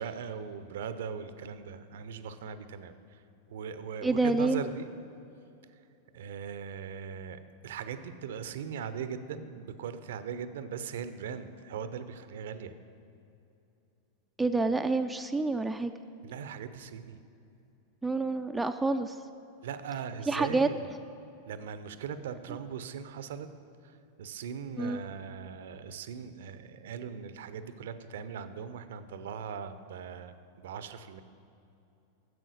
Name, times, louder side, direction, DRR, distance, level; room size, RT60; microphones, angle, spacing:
voice 1, 0.0-3.2 3.5-4.9 6.1-12.7 16.2-17.2 19.6-20.9 21.5-23.5 23.8-31.2, right 7 dB, 60° right, 12 dB, 0.6 m, -39 dB
voice 2, 4.0-4.6 14.4-15.9 18.0-19.1 20.3-20.7 24.8-25.0, right 3 dB, 10° right, 6 dB, 0.4 m, -28 dB
9.3 x 7.6 x 6.3 m, 2.7 s
figure-of-eight pair, 90°, 0 cm